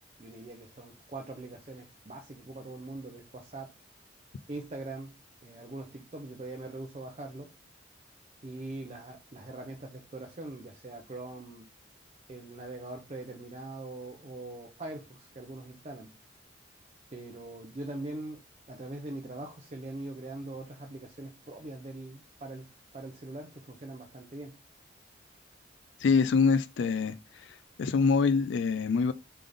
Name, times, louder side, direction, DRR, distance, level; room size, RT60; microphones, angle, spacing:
voice 1, 0.2-3.7 4.5-5.1 5.4-7.5 8.4-11.7 12.3-16.2 17.1-18.4 18.7-22.7 22.9-24.6, right 2 dB, 35° right, 0.6 m, -42 dB
voice 2, 26.0-27.1 27.8-29.1, left 5 dB, 75° left, 0.3 m, -24 dB
3.9 x 3.3 x 3.4 m
head